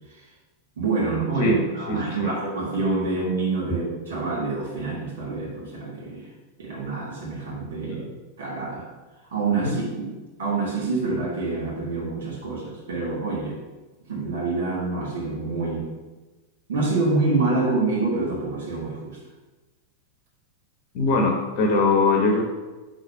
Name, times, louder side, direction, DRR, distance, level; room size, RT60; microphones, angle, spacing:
voice 1, 0.8-6.3 6.6-8.0 8.4-8.8 9.3-10.1 10.4-13.6 14.1-15.9 16.7-19.2, right 3 dB, 65° right, -3 dB, 1.5 m, -26 dB
voice 2, 1.9-2.3 7.9-8.1 9.6-9.8 20.9-22.4, left 3 dB, 45° left, 1 dB, 0.9 m, -21 dB
5.1 x 4.1 x 5.4 m, 1.2 s
figure-of-eight pair, 90°, 0 cm